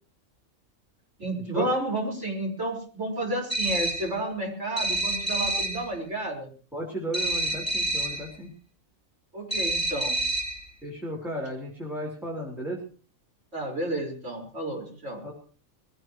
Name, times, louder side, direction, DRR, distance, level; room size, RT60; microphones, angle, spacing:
voice 1, 1.2-6.5 9.3-10.2 13.5-15.2, right 1 dB, 55° right, 0 dB, 5.7 m, -31 dB
sound 1, 3.5-4.1 4.8-5.9 7.1-8.3 9.5-10.6, right 1 dB, 25° left, 5.9 m, -28 dB
voice 2, 6.7-8.5 10.8-12.8 15.2-15.3, right 1 dB, ahead, -4 dB, 3.7 m, -34 dB
22.0 x 17.5 x 3.2 m, 0.41 s
omnidirectional pair, 1.4 m